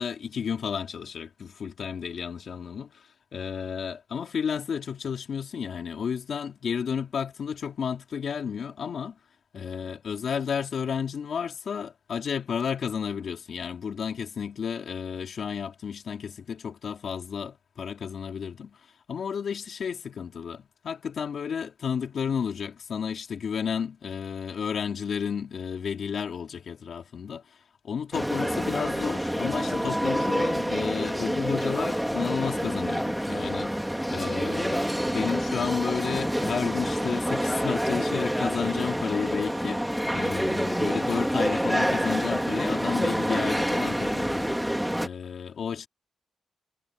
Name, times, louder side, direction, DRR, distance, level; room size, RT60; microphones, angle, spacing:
voice 1, 0.0-9.2 9.5-18.8 19.1-27.4 27.8-45.9, left 7 dB, 65° left, 3.0 m, -32 dB
sound 1, 28.1-45.1, equal, 5° right, 2.9 m, -27 dB
cardioid pair, 100°, 0 cm